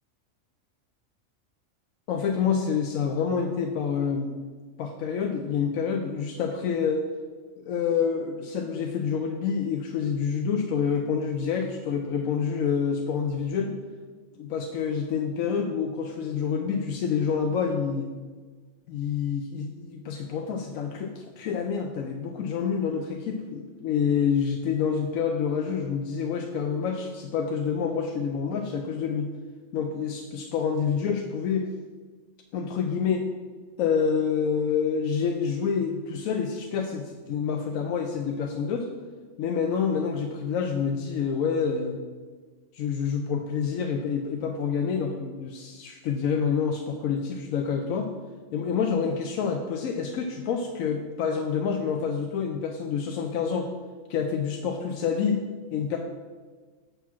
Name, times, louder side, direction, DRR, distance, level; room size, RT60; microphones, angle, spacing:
voice 1, 2.1-4.4 4.8-7.0 7.6-13.8 14.4-18.1 18.9-29.3 29.7-31.7 32.5-33.2 33.8-38.9 39.4-42.0 42.7-48.1 48.5-53.7 54.1-56.0, left 6 dB, 80° left, 4 dB, 1.0 m, -27 dB
7.3 x 3.5 x 5.9 m, 1.4 s
omnidirectional pair, 1.4 m